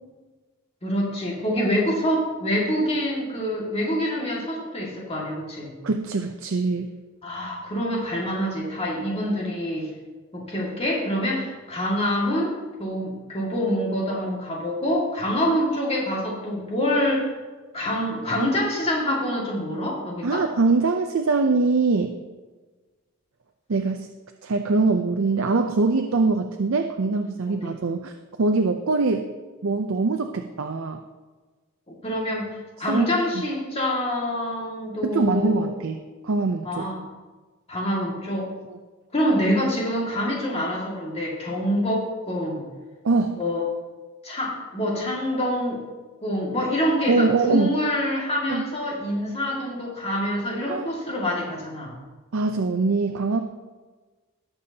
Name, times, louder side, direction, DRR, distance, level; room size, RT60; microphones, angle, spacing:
voice 1, 0.8-5.7 7.2-9.9 10.3-17.3 17.7-20.5 27.5-27.7 32.0-35.6 36.6-37.0 37.7-38.5 39.1-42.6 43.4-43.6 44.2-45.8 46.2-51.9, equal, 25° left, -3 dB, 2.1 m, -26 dB
voice 2, 5.8-6.9 20.2-22.1 23.7-24.1 24.4-28.1 28.4-29.2 29.6-31.0 32.9-33.1 35.0-36.8 38.7-38.8 43.0-43.4 47.1-47.7 48.5-48.6 50.6-50.9 52.3-53.4, right 3 dB, 60° right, 5 dB, 0.5 m, -23 dB
18.0 x 7.0 x 2.9 m, 1.3 s
head